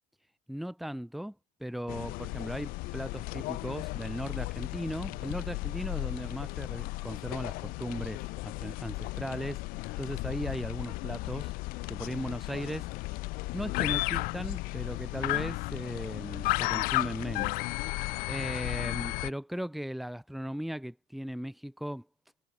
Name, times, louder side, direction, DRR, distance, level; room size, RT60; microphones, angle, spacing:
voice 1, 0.5-1.3 1.6-9.6 10.0-11.5 11.9-12.9 13.5-17.6 17.9-22.0, equal, ahead, 2.9 m, -37 dB
sound 1, 1.9-19.3, left 23 dB, 55° left, 1.2 m, -34 dB
cardioid pair, 175°, 18 cm